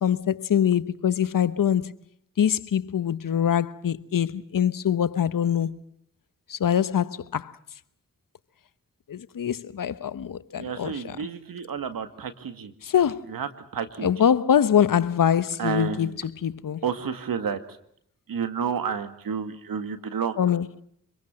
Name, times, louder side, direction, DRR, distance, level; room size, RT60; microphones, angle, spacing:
voice 1, 0.0-1.9 2.4-5.8 6.5-7.5 9.1-11.2 12.8-13.2 14.0-16.1 16.4-16.8 20.4-20.7, left 9 dB, 70° left, 1.1 m, -24 dB
voice 2, 10.6-12.7 13.3-14.1 15.6-16.2 16.8-17.8 18.3-20.4, right 7 dB, 80° right, 2.0 m, -30 dB
26.0 x 22.5 x 7.6 m
cardioid pair, 45°, 34 cm